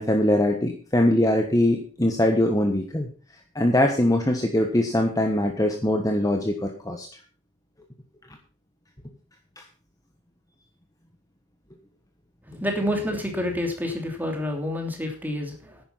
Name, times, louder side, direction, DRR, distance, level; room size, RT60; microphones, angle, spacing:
voice 1, 0.0-3.1 3.5-7.1, left 1 dB, 15° left, 4 dB, 1.3 m, -22 dB
voice 2, 12.5-15.8, left 1 dB, 10° right, 2 dB, 3.0 m, -28 dB
11.0 x 9.8 x 5.8 m, 0.37 s
head